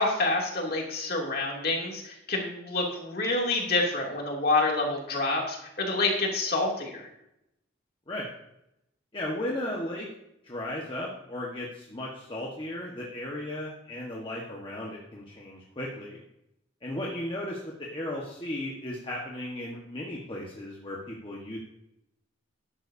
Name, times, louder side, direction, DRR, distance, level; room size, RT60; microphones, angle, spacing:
voice 1, 0.0-7.1, left 2 dB, 50° left, -1 dB, 2.7 m, -27 dB
voice 2, 9.1-10.1 10.4-16.2 16.8-21.6, left 1 dB, 25° left, -3 dB, 1.4 m, -35 dB
13.5 x 11.5 x 2.7 m, 0.83 s
head